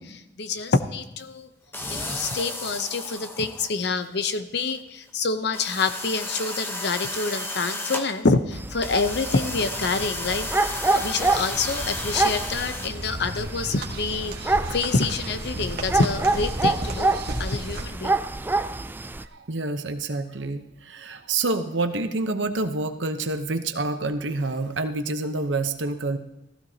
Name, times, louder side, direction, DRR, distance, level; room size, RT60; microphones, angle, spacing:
voice 1, 0.0-1.5 1.9-18.2, left 4 dB, 65° left, 10 dB, 0.8 m, -27 dB
sound 1, 1.7-3.9 4.7-4.8 5.1-5.2 5.5-8.1 8.8-12.9, left 1 dB, 15° left, 1.0 m, -33 dB
sound 2, 8.5-19.3, right 3 dB, 10° right, 0.3 m, -27 dB
sound 3, 11.1-17.8, right 1 dB, 60° right, 1.6 m, -35 dB
voice 2, 19.2-26.2, right 3 dB, 85° right, 8 dB, 0.9 m, -28 dB
15.0 x 15.0 x 2.9 m, 0.96 s
head